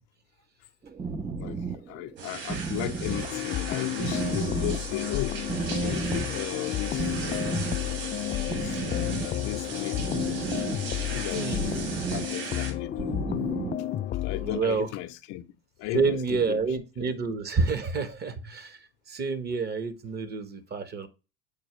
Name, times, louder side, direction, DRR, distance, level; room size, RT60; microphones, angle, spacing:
sound 1, 0.8-14.1, right 4 dB, 15° right, 0.6 m, -34 dB
voice 1, 1.9-5.4 5.8-7.7 8.4-10.2 11.1-11.8 12.1-13.1 14.2-15.4 15.8-16.6, left 14 dB, 55° left, 0.7 m, -36 dB
sound 2, 2.2-12.7, right 5 dB, 55° right, 2.6 m, -38 dB
sound 3, 3.0-14.6, left 14 dB, 30° left, 0.4 m, -32 dB
voice 2, 14.3-14.9 15.9-18.8 19.1-21.1, right 4 dB, 35° right, 1.1 m, -28 dB
7.1 x 4.2 x 3.2 m
hypercardioid pair, 90°, 30 cm